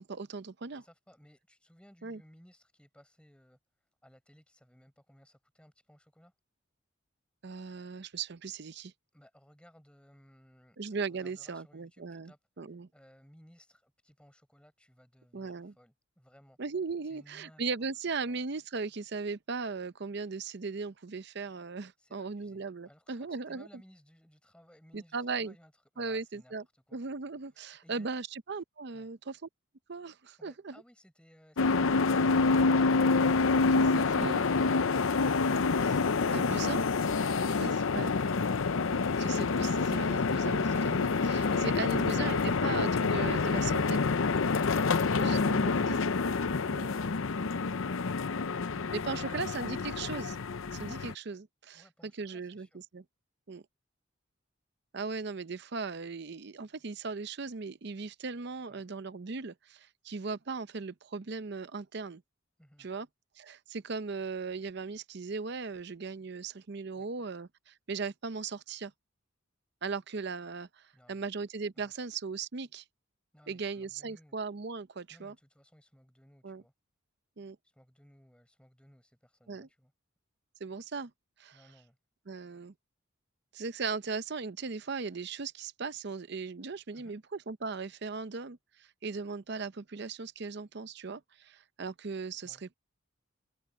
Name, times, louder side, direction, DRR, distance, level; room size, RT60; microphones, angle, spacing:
voice 1, 0.0-0.8 2.0-2.2 7.4-8.9 10.8-12.9 15.3-15.7 16.6-23.7 24.9-25.5 26.0-26.6 26.9-29.5 29.9-30.7 33.7-34.4 35.8-36.0 36.3-36.8 37.6-38.1 38.9-44.0 45.2-46.0 46.7-46.9 48.9-50.4 50.7-52.7 52.9-53.0 53.5-53.6 54.9-62.2 62.8-63.1 63.4-68.9 69.8-72.8 73.5-75.3 76.4-76.6 77.4-77.6 79.5-79.7 80.6-81.1 81.4-81.6 82.3-82.7 83.5-92.8, right 4 dB, 55° right, 0.6 m, -38 dB
voice 2, 0.7-6.3 9.1-16.6 17.0-17.6 18.3-18.4 22.0-27.0 27.5-28.1 28.9-29.1 30.4-32.9 51.7-52.8 58.7-58.9 62.6-62.9 66.9-67.2 70.9-71.3 71.8-71.9 73.3-74.4 75.1-76.7 77.6-79.9 81.5-82.0 86.9-87.2 92.4-92.6, equal, 5° left, 5.2 m, -61 dB
sound 1, 31.6-51.1, left 4 dB, 75° left, 0.7 m, -27 dB
open air
head